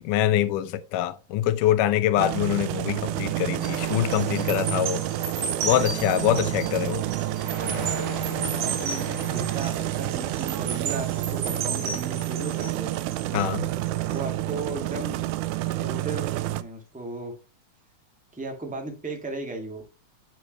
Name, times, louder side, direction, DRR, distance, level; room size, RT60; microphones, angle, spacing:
voice 1, 0.0-5.0 5.6-7.1 13.3-13.7, left 12 dB, 90° left, 2.3 m, -24 dB
sound 1, 2.2-16.6, right 15 dB, 80° right, 2.0 m, -29 dB
sound 2, 3.6-14.2 14.6-14.9, right 4 dB, 55° right, 3.4 m, -34 dB
voice 2, 8.4-12.9 14.0-15.2 15.8-17.3 18.3-19.8, right 3 dB, 5° right, 1.0 m, -36 dB
8.2 x 7.4 x 2.9 m
omnidirectional pair, 3.6 m